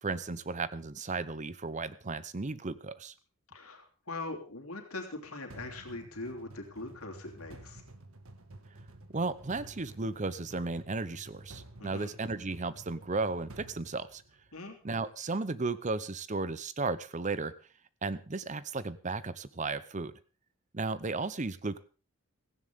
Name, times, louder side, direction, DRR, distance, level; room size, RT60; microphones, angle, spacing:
voice 1, 0.0-3.1 9.1-14.2 14.8-17.5 18.0-20.1 20.7-21.8, right 3 dB, 35° right, 15 dB, 0.8 m, -34 dB
voice 2, 3.5-7.8 11.8-12.1 14.5-14.8, left 2 dB, 85° left, 3 dB, 3.2 m, -41 dB
sound 1, 5.5-14.7, right 1 dB, 75° right, 1.7 m, -51 dB
16.5 x 15.0 x 3.6 m, 0.34 s
head